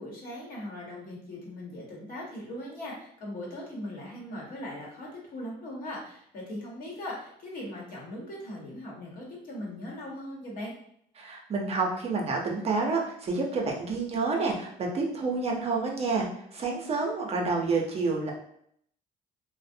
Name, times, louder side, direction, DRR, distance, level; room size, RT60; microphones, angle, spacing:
voice 1, 0.0-10.7, left 1 dB, 60° left, -3 dB, 1.0 m, -39 dB
voice 2, 11.2-18.3, right 3 dB, 35° right, 0 dB, 0.5 m, -29 dB
2.4 x 2.0 x 2.6 m, 0.69 s
cardioid pair, 110°, 17 cm